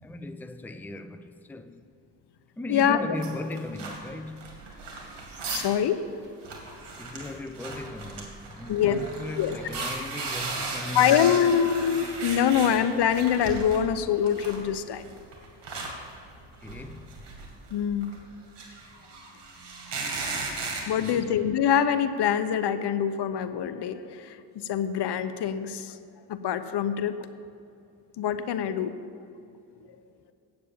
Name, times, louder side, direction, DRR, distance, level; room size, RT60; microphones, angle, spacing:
voice 1, 0.0-1.8 2.6-4.5 7.0-11.4 16.6-17.2 21.0-21.3, left 2 dB, 5° left, 0.5 m, -38 dB
voice 2, 2.7-3.0 5.5-6.0 8.7-9.1 9.4-9.6 10.9-15.0 17.7-18.1 20.9-24.4 24.6-26.0 26.3-27.2 28.2-29.1, left 8 dB, 65° left, 0.8 m, -24 dB
sound 1, 3.2-5.8 6.1-6.2 6.4-13.8 14.2-21.1, right 3 dB, 70° right, 2.4 m, -36 dB
8.7 x 8.3 x 7.2 m
cardioid pair, 75°, 43 cm